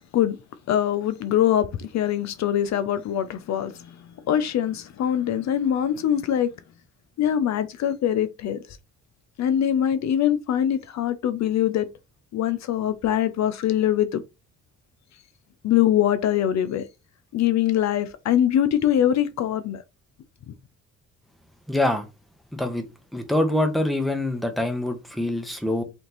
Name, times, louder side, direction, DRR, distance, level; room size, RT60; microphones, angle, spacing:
voice 1, 0.7-4.0 4.3-6.5 7.2-8.6 9.4-11.9 12.3-14.2 15.6-16.9 17.3-19.8 20.5-20.6, left 10 dB, 65° left, 0.6 m, -23 dB
voice 2, 21.7-22.1 22.5-22.8 23.1-25.8, left 1 dB, ahead, 1.0 m, -24 dB
3.7 x 3.5 x 3.0 m
cardioid pair, 90°, 30 cm